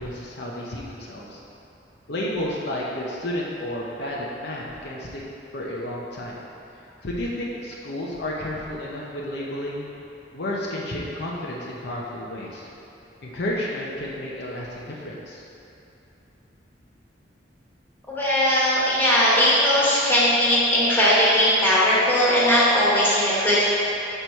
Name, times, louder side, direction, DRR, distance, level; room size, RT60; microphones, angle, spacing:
voice 1, 0.0-1.4 2.1-5.2 5.5-6.4 7.0-9.9 10.3-12.7 13.2-15.4, left 1 dB, 65° left, -4 dB, 0.8 m, -31 dB
voice 2, 18.1-23.6, equal, 10° left, -8 dB, 1.5 m, -19 dB
6.8 x 4.5 x 4.5 m, 2.8 s
head